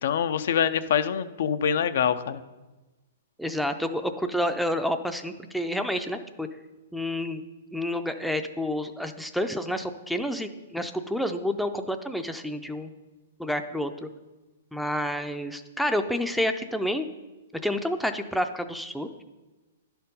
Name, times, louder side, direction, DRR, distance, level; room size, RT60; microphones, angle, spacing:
voice 1, 0.0-2.4, left 8 dB, 65° left, 12 dB, 0.4 m, -25 dB
voice 2, 3.4-6.5 6.9-7.4 7.7-12.9 13.4-14.1 14.7-17.1 17.5-19.1, left 1 dB, ahead, 6 dB, 0.4 m, -29 dB
10.5 x 4.4 x 5.4 m, 1.2 s
hypercardioid pair, 130°, 0 cm